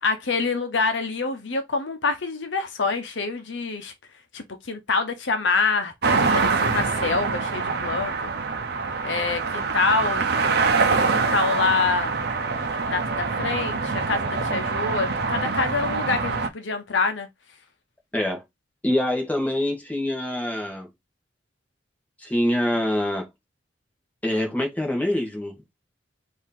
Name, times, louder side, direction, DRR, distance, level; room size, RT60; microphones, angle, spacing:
voice 1, 0.0-3.9 4.3-8.3 9.0-10.3 10.9-12.2 12.9-17.3, left 4 dB, 70° left, 0.9 m, -26 dB
sound 1, 6.0-16.5, right 4 dB, 55° right, 0.8 m, -24 dB
voice 2, 18.1-18.4 18.8-20.9 22.2-23.3 24.2-25.5, left 1 dB, 10° left, 1.3 m, -25 dB
4.6 x 2.8 x 3.7 m
head